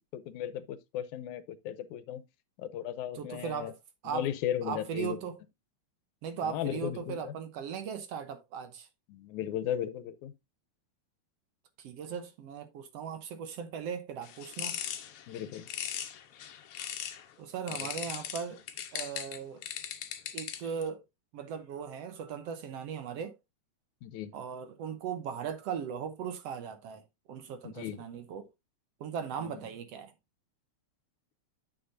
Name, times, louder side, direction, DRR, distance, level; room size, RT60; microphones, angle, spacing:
voice 1, 0.1-2.2 2.6-3.7 4.1-5.2 6.4-7.3 9.1-10.3 15.3-15.7 17.8-17.9 24.0-24.3 27.6-28.0 29.4-29.6, left 10 dB, 90° left, 2.2 m, -36 dB
voice 2, 3.1-3.7 4.0-4.3 4.6-5.4 6.2-8.9 11.8-14.8 17.4-18.6 18.9-19.6 20.3-21.0 21.3-23.4 24.3-28.5 29.0-30.1, right 7 dB, 65° right, 1.8 m, -38 dB
sound 1, 14.2-17.2 17.7-20.8, left 10 dB, 65° left, 1.7 m, -39 dB
9.5 x 6.8 x 2.6 m
omnidirectional pair, 3.4 m